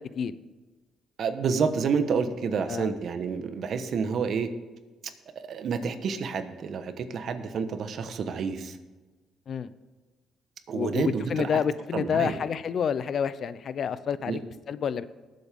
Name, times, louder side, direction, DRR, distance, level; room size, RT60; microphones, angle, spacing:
voice 1, 1.2-4.5 5.5-8.8 10.7-11.6 11.9-12.4 14.3-14.4, right 5 dB, 60° right, 9 dB, 1.2 m, -29 dB
voice 2, 10.7-14.4 14.7-15.0, left 7 dB, 55° left, 15 dB, 0.6 m, -28 dB
19.5 x 7.8 x 3.7 m, 1.2 s
cardioid pair, 90°, 0 cm